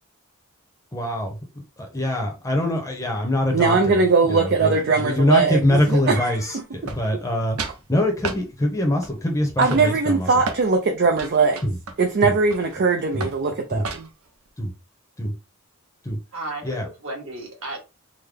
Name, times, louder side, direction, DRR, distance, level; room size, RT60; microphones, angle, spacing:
voice 1, 0.9-1.4 1.8-4.0 4.3-7.6 7.9-10.3 11.6-11.8 12.2-12.3 13.1-13.3 13.7-13.8 14.6-14.7 15.2-15.3 16.0-16.2 16.6-16.9, left 1 dB, 15° left, 0.8 m, -23 dB
voice 2, 3.5-6.6 9.6-11.6 12.0-14.1, right 4 dB, 50° right, 0.4 m, -20 dB
sound 1, 6.9-7.3 7.6-7.8 8.2-8.4 9.0-9.3 9.6-10.7 11.2-12.8 13.2-13.4 13.8-14.3, right 4 dB, 90° right, 0.7 m, -33 dB
voice 3, 16.3-17.8, right 2 dB, 65° right, 1.5 m, -34 dB
3.7 x 2.1 x 3.3 m
head